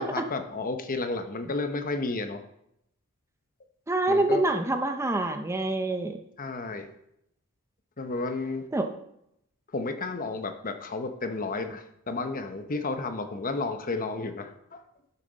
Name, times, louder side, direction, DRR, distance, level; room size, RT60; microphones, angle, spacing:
voice 1, 0.0-2.4 4.1-4.4 6.4-6.9 8.0-8.6 9.7-14.8, left 3 dB, 40° left, 7 dB, 0.9 m, -32 dB
voice 2, 3.9-6.2 8.7-8.9, right 2 dB, 10° right, 6 dB, 0.6 m, -26 dB
12.0 x 7.0 x 4.0 m, 0.78 s
head